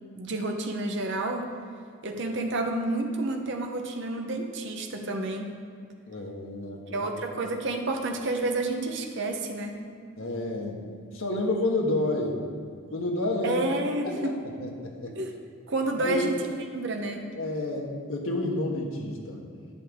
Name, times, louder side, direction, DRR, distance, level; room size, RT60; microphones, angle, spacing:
voice 1, 0.1-1.5 2.0-5.5 6.9-9.8 13.4-14.4 15.2-15.3 15.7-16.5 16.7-17.2, right 2 dB, 55° right, 2 dB, 0.9 m, -30 dB
voice 2, 6.1-7.1 10.2-10.8 11.1-12.4 12.9-13.6 14.0-14.3 14.6-15.1 16.0-16.2 17.3-19.4, left 2 dB, 75° left, 0 dB, 1.4 m, -30 dB
11.0 x 7.0 x 3.6 m, 2.3 s
head